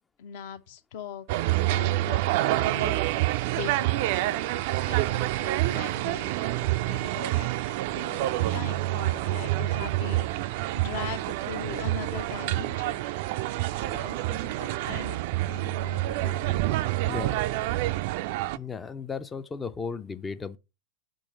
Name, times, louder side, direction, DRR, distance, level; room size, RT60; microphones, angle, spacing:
voice 1, 0.2-1.3 1.6-3.0 3.5-4.6 4.9-13.0 13.8-15.2 15.5-16.8, left 8 dB, 50° left, 0.7 m, -41 dB
sound 1, 1.3-18.6, right 16 dB, 50° right, 0.3 m, -27 dB
voice 2, 17.0-17.5 18.5-20.6, left 5 dB, 15° left, 0.4 m, -35 dB
6.0 x 3.9 x 6.2 m
figure-of-eight pair, 90°, 0 cm